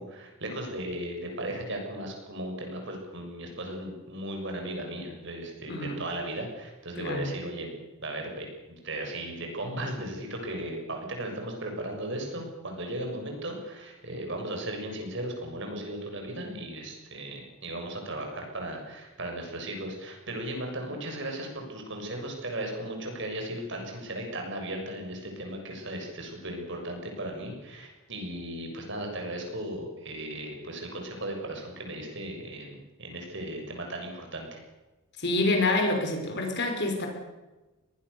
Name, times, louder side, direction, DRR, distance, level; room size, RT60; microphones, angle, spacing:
voice 1, 0.0-7.7 8.0-34.6, right 1 dB, 55° right, 3 dB, 6.9 m, -36 dB
voice 2, 5.7-6.0 7.0-7.3 35.2-37.1, left 2 dB, 55° left, 3 dB, 5.6 m, -27 dB
25.0 x 20.0 x 7.1 m, 1.1 s
head